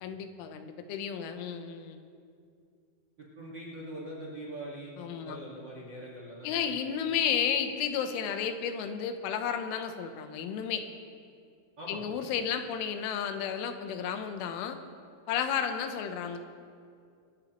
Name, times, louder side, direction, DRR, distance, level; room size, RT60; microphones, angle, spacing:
voice 1, 0.0-2.0 5.0-5.4 6.4-10.8 11.9-14.8 15.3-16.4, left 8 dB, 90° left, 7 dB, 3.4 m, -32 dB
voice 2, 3.2-6.9 11.8-12.1, right 1 dB, 80° right, -5 dB, 1.0 m, -43 dB
25.0 x 13.0 x 3.1 m, 2.3 s
omnidirectional pair, 5.4 m